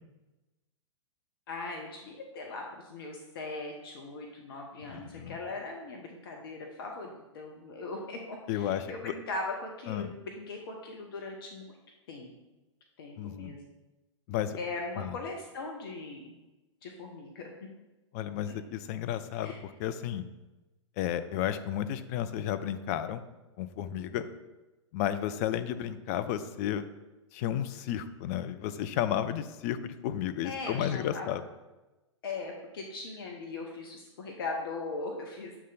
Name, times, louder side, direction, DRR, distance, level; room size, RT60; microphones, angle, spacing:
voice 1, 1.5-11.8 12.1-12.3 13.0-13.6 14.6-16.3 16.8-17.5 19.4-19.6 30.4-31.3 32.2-35.6, left 3 dB, 50° left, 1 dB, 0.7 m, -39 dB
voice 2, 4.9-5.4 8.5-9.1 9.9-10.1 13.2-13.6 14.3-14.6 15.0-15.1 18.1-20.2 21.0-23.2 23.6-24.2 24.9-26.9 27.3-31.4, left 10 dB, 30° left, 11 dB, 0.4 m, -32 dB
7.3 x 3.4 x 4.0 m, 1.1 s
figure-of-eight pair, 105°, 16 cm